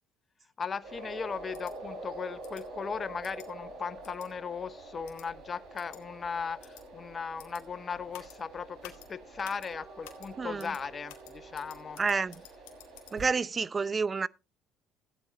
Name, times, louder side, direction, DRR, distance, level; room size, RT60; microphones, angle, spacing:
voice 1, 0.6-12.0, left 6 dB, 40° left, 0.8 m, -37 dB
sound 1, 0.8-13.2, right 2 dB, 60° right, 5.3 m, -46 dB
sound 2, 1.5-1.7 2.4-2.6 3.2-3.5 4.0-4.3 5.1-5.3 5.8-6.0 6.6-6.8 7.4-7.6 8.1-8.4 8.8-9.1 9.4-9.7 10.0-10.3 10.6-10.8 11.1-13.1, left 12 dB, 85° left, 2.2 m, -51 dB
voice 2, 10.4-10.7 12.0-12.4 13.1-14.3, right 5 dB, 30° right, 0.5 m, -29 dB
15.5 x 8.9 x 2.9 m
supercardioid pair, 75°, 0 cm